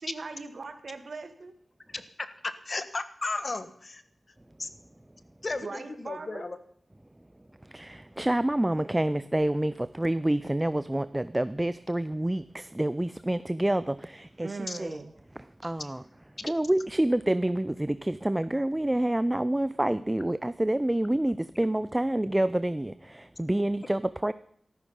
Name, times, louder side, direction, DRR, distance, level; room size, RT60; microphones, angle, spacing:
voice 1, 0.0-1.5 5.6-6.5 14.4-15.1 15.6-15.7, right 3 dB, 70° right, 1.8 m, -39 dB
voice 2, 1.9-4.0 4.6-4.7 5.4-6.6 14.7-14.8, left 3 dB, 50° left, 1.3 m, -34 dB
voice 3, 7.7-15.0 15.6-16.0 16.4-24.3, right 1 dB, 20° right, 0.5 m, -28 dB
14.0 x 13.0 x 5.5 m
cardioid pair, 40°, 0 cm